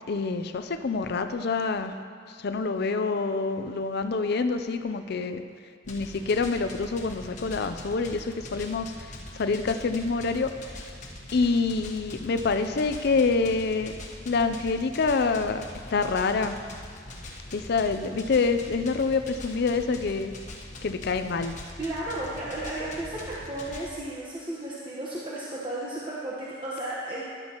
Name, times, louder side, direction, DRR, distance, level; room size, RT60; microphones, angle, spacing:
voice 1, 0.1-2.0 2.4-5.4 5.9-10.5 11.3-13.9 14.3-15.6 15.9-16.6 17.5-20.3 20.8-21.5, left 4 dB, 55° left, 8 dB, 0.5 m, -26 dB
sound 1, 5.8-23.9, left 1 dB, 40° left, 1.3 m, -42 dB
voice 2, 21.8-27.2, right 1 dB, 25° right, -7 dB, 1.2 m, -34 dB
14.0 x 11.5 x 3.0 m, 2.1 s
head